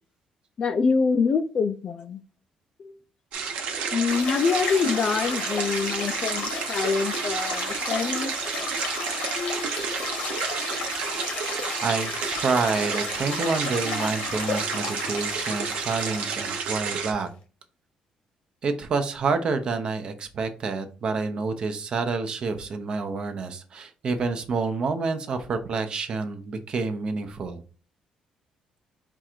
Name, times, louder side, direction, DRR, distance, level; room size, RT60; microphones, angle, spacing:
voice 1, 0.6-2.2 2.8-2.9 3.9-8.3 9.3-9.8, left 5 dB, 40° left, 0.4 m, -25 dB
sound 1, 3.3-17.1, right 6 dB, 75° right, 0.9 m, -31 dB
sound 2, 4.1-17.3, left 5 dB, 65° left, 1.0 m, -34 dB
voice 2, 11.8-17.3 18.6-27.6, right 4 dB, 45° right, 0.7 m, -28 dB
4.6 x 2.5 x 4.4 m
cardioid pair, 135°, 2 cm